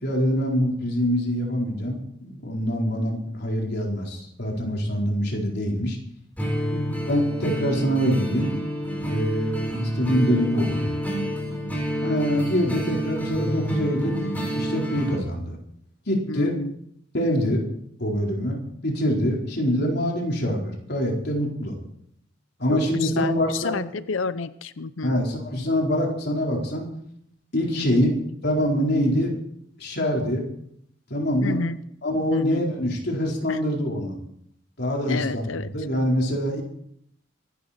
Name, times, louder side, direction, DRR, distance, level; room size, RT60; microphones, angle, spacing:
voice 1, 0.0-6.0 7.1-8.5 9.1-10.9 12.0-14.2 14.5-15.6 16.1-16.6 17.1-17.6 18.0-21.7 22.6-23.8 25.0-26.9 27.5-28.1 28.4-29.3 29.8-30.4 31.1-31.6 32.0-34.2 34.8-36.6, equal, 55° left, -1 dB, 4.3 m, -24 dB
sound 1, 6.4-15.2, equal, 10° left, 4.5 m, -28 dB
voice 2, 16.3-16.7 23.0-25.2 27.8-28.0 31.4-31.8 32.3-32.6 33.5-33.6 35.1-35.7, left 4 dB, 85° left, 14 dB, 0.7 m, -30 dB
25.0 x 12.0 x 4.4 m, 0.70 s
head